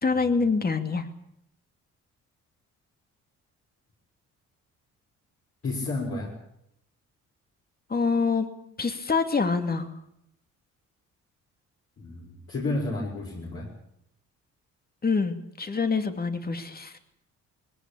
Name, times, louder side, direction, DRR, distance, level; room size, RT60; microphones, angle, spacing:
voice 1, 0.0-1.1 7.9-8.5 8.8-10.0 15.0-17.0, left 4 dB, 30° left, 7 dB, 2.7 m, -26 dB
voice 2, 5.6-6.3 12.0-13.7, left 2 dB, 50° left, -3 dB, 6.3 m, -31 dB
21.0 x 18.5 x 8.7 m, 0.76 s
cardioid pair, 90°, 30 cm